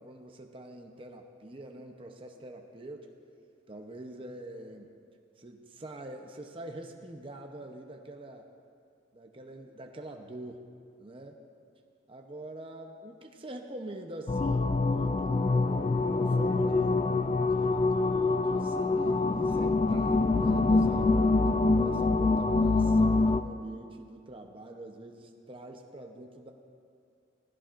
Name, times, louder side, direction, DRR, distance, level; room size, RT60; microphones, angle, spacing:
voice 1, 0.0-3.1 3.7-4.9 5.4-8.5 9.1-10.6 11.0-11.4 12.1-17.0 17.4-21.2 21.8-26.5, right 1 dB, 30° right, 3 dB, 0.7 m, -45 dB
sound 1, 14.3-23.4, left 3 dB, 30° left, 0.4 m, -25 dB
17.0 x 16.0 x 2.5 m, 2.4 s
head